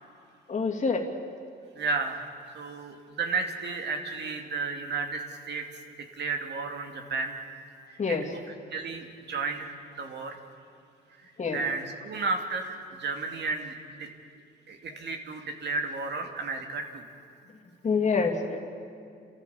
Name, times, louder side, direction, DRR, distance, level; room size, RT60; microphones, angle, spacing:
voice 1, 0.5-1.1 8.0-8.3 11.4-11.6 17.8-18.6, left 4 dB, 35° left, 2 dB, 2.7 m, -26 dB
voice 2, 1.8-2.2 2.5-5.6 6.2-7.4 7.9-8.2 8.7-10.4 11.5-14.1 14.7-17.0, right 4 dB, 60° right, 4 dB, 2.5 m, -33 dB
28.5 x 14.0 x 7.3 m, 2.4 s
cardioid pair, 90°, 20 cm